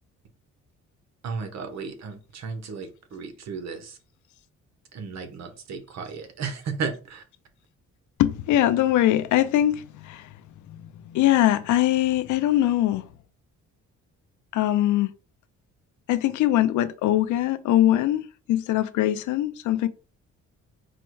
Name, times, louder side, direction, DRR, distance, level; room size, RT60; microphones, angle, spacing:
voice 1, 1.2-3.9 4.9-7.2, right 5 dB, 60° right, 1.0 m, -34 dB
voice 2, 8.2-10.3 11.0-13.1 14.5-15.1 16.1-19.9, left 13 dB, 75° left, 0.5 m, -22 dB
4.3 x 2.1 x 4.6 m
cardioid pair, 90°, 30 cm